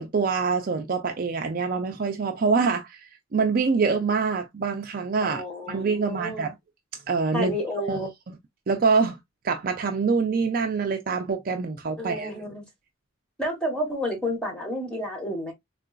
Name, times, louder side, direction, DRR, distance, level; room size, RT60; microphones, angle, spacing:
voice 1, 0.0-3.0 3.3-5.4 5.7-6.5 7.1-7.5 7.9-8.0 8.7-9.2 9.4-12.3, right 4 dB, 40° right, 0.4 m, -25 dB
voice 2, 5.2-6.5 7.3-8.1 12.0-12.6 13.4-15.5, equal, 5° left, 1.1 m, -30 dB
3.7 x 2.4 x 2.3 m
head